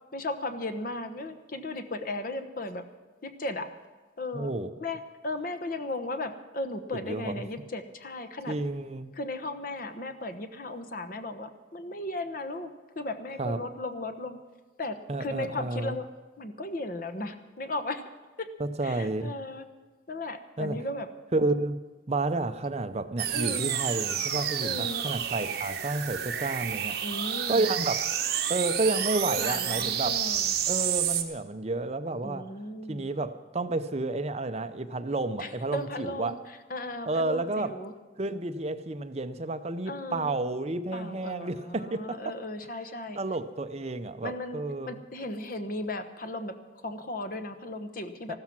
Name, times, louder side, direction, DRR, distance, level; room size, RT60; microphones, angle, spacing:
voice 1, 0.1-2.8 3.2-3.7 4.2-4.5 4.8-8.5 9.1-12.7 13.0-14.4 14.8-16.1 16.4-18.0 18.4-18.5 18.8-19.6 20.1-21.1 23.3-23.7 24.6-25.0 27.0-27.6 29.3-30.5 32.2-33.1 35.4-36.4 36.7-37.9 39.9-40.4 40.9-43.2 44.2-46.5 46.8-48.4, left 2 dB, 45° left, 9 dB, 1.0 m, -36 dB
voice 2, 4.3-4.7 6.9-7.3 8.5-9.1 13.4-13.6 15.1-16.0 18.6-19.3 20.6-20.8 21.3-21.8 22.1-27.0 27.5-28.0 28.5-30.1 30.7-32.4 32.9-36.3 37.1-37.7 38.2-42.3 43.2-45.0 48.3-48.4, right 2 dB, 35° right, 10 dB, 0.6 m, -31 dB
sound 1, 23.2-31.2, right 9 dB, 55° right, 1.3 m, -30 dB
14.5 x 13.0 x 6.0 m, 1.3 s
head